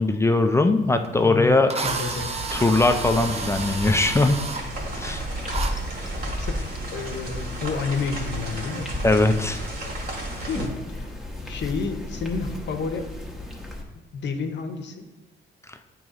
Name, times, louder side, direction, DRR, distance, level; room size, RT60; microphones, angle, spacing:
voice 1, 0.0-1.7 2.5-4.4 5.0-5.2 9.0-9.6 15.7-15.8, left 2 dB, 15° left, 6 dB, 0.4 m, -20 dB
Drill, 1.0-1.1 1.7-4.6 5.5-5.7, right 4 dB, 30° right, 0.6 m, -31 dB
voice 2, 1.2-2.3 6.3-6.7 6.9-8.9 10.5-13.1 13.9-15.1, left 5 dB, 65° left, 6 dB, 0.8 m, -30 dB
sound 1, 1.8-10.7, right 2 dB, 50° right, 2.0 m, -35 dB
sound 2, 2.5-13.8, left 1 dB, ahead, 1.1 m, -35 dB
9.0 x 3.1 x 3.7 m, 1.1 s
cardioid pair, 90°, 20 cm